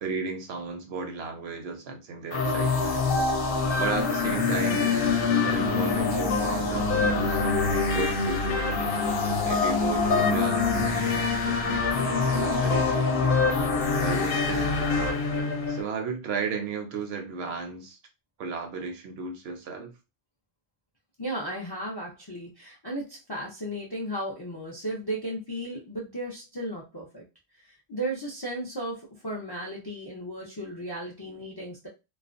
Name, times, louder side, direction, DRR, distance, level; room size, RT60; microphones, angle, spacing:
voice 1, 0.0-3.1 3.7-7.5 7.9-9.0 9.4-13.5 14.0-15.0 15.7-18.0 18.4-19.9, right 4 dB, 70° right, 0.8 m, -34 dB
sound 1, 2.3-15.8, left 4 dB, 60° left, 0.8 m, -25 dB
voice 2, 21.2-27.2 27.6-31.9, right 1 dB, 40° left, 0.3 m, -35 dB
2.4 x 2.1 x 2.4 m
omnidirectional pair, 1.2 m